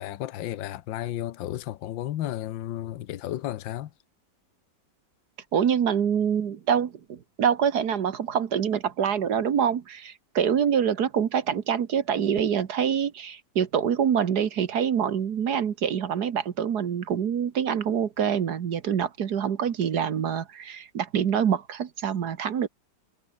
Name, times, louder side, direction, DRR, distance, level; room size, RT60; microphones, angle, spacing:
voice 1, 0.0-3.9, left 13 dB, 80° left, 1.6 m, -33 dB
voice 2, 5.5-22.7, right 8 dB, 60° right, 1.7 m, -25 dB
omnidirectional pair, 2.1 m